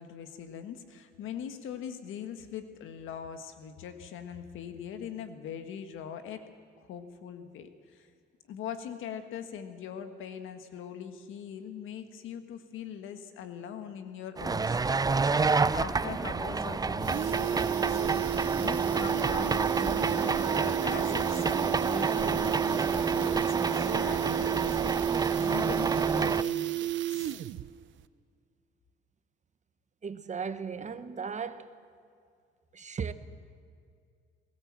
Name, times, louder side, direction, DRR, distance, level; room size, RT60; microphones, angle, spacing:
voice 1, 0.0-6.4 6.8-8.1 8.5-27.3, left 8 dB, 85° left, 1.7 m, -42 dB
sound 1, 14.4-26.4, right 4 dB, 20° right, 0.5 m, -29 dB
sound 2, 16.1-16.2 16.5-16.6 16.9-27.7 28.0-28.1, right 12 dB, 70° right, 0.7 m, -31 dB
voice 2, 30.0-31.7 32.7-33.1, right 6 dB, 35° right, 1.1 m, -36 dB
21.0 x 18.5 x 7.5 m
cardioid pair, 90°, 20 cm